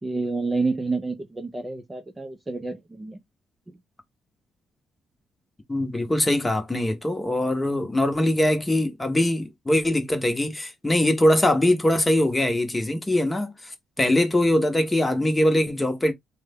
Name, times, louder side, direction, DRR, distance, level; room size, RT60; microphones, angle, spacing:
voice 1, 0.0-3.2 3.7-3.8, right 3 dB, 20° right, 0.6 m, -29 dB
voice 2, 5.7-13.5 14.0-16.1, left 1 dB, 15° left, 0.9 m, -22 dB
3.2 x 2.2 x 3.4 m
cardioid pair, 90°, 0 cm